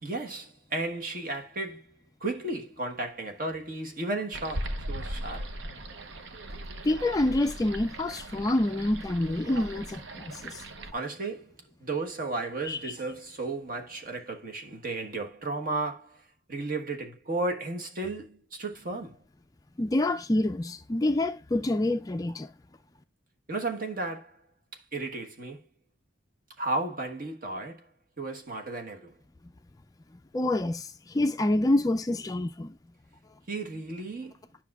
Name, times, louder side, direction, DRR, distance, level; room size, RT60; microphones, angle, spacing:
voice 1, 0.0-1.9 2.2-5.5 10.9-11.5 11.8-16.2 16.5-19.2 23.5-24.4 24.9-25.6 26.6-27.9 28.2-29.1 33.5-34.3, right 2 dB, 45° right, 1.3 m, -34 dB
sound 1, 4.3-10.9, right 1 dB, 70° right, 0.8 m, -38 dB
voice 2, 6.8-10.6 12.7-12.8 19.8-22.5 30.3-30.9 31.1-32.7, left 1 dB, 20° left, 0.3 m, -27 dB
10.5 x 5.9 x 2.4 m
head